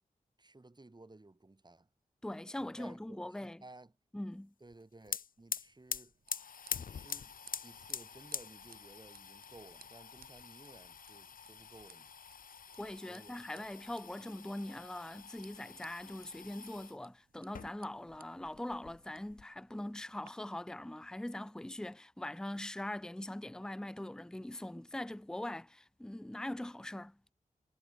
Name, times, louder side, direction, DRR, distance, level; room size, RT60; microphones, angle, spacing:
voice 1, 0.4-1.9 2.6-3.9 4.6-6.2 6.7-12.1 13.1-13.7, right 2 dB, 30° right, 2.5 m, -57 dB
voice 2, 2.2-3.6 4.1-4.5 12.8-27.2, left 1 dB, 5° left, 0.6 m, -42 dB
sound 1, 4.7-4.8 5.0-17.0 17.4-18.2 18.4-19.4, left 7 dB, 70° left, 0.7 m, -45 dB
sound 2, 5.5-20.3, right 5 dB, 75° right, 4.0 m, -64 dB
cardioid pair, 60°, 15 cm